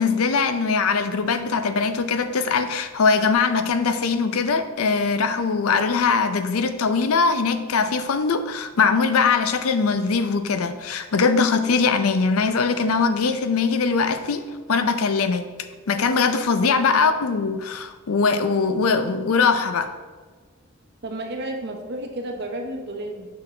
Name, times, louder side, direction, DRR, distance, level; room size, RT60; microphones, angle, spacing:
voice 1, 0.0-15.5 15.9-19.9, left 5 dB, 75° left, 10 dB, 0.5 m, -21 dB
voice 2, 21.0-23.3, right 1 dB, 45° right, 3 dB, 0.8 m, -31 dB
6.1 x 6.0 x 3.2 m, 1.4 s
head